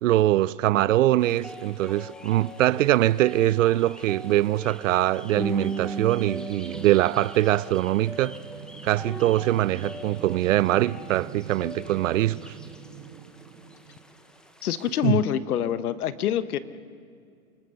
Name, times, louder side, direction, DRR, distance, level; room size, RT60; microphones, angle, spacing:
voice 1, 0.0-8.4 8.8-12.5 15.0-15.2, right 14 dB, 55° right, 0.5 m, -23 dB
sound 1, 1.2-15.0, right 2 dB, ahead, 1.0 m, -39 dB
sound 2, 7.7-14.7, right 8 dB, 25° right, 1.5 m, -45 dB
voice 2, 14.6-16.6, left 10 dB, 70° left, 1.3 m, -25 dB
28.5 x 20.0 x 6.5 m
hypercardioid pair, 145°, 46 cm